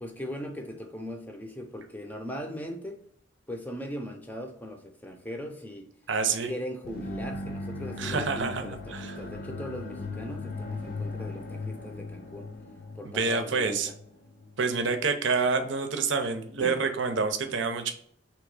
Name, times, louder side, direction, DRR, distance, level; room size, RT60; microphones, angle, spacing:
voice 1, 0.0-3.0 3.5-5.9 6.3-12.5 13.0-13.9 16.6-16.8, equal, 10° left, 4 dB, 0.6 m, -39 dB
voice 2, 6.1-6.5 8.0-8.6 8.9-9.2 13.0-13.9 14.6-17.9, right 4 dB, 70° right, 7 dB, 0.6 m, -27 dB
sound 1, 6.8-14.6, left 3 dB, 50° left, 0.6 m, -38 dB
3.5 x 3.0 x 4.7 m, 0.66 s
head